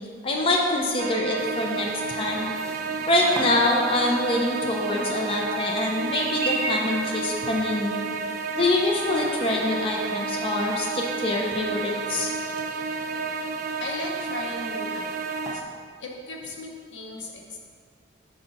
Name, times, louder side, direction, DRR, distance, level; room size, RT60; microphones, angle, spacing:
voice 1, 0.2-2.5 3.1-7.9 8.5-12.4, left 2 dB, 30° left, -1 dB, 0.6 m, -25 dB
sound 1, 1.0-15.6, right 4 dB, 50° right, 0.3 m, -31 dB
Chirp tweet, 1.4-15.5, right 2 dB, 20° right, 0.8 m, -39 dB
voice 2, 13.8-15.6 16.0-17.6, left 2 dB, 85° left, 0 dB, 0.9 m, -37 dB
5.8 x 5.4 x 3.9 m, 2.1 s
head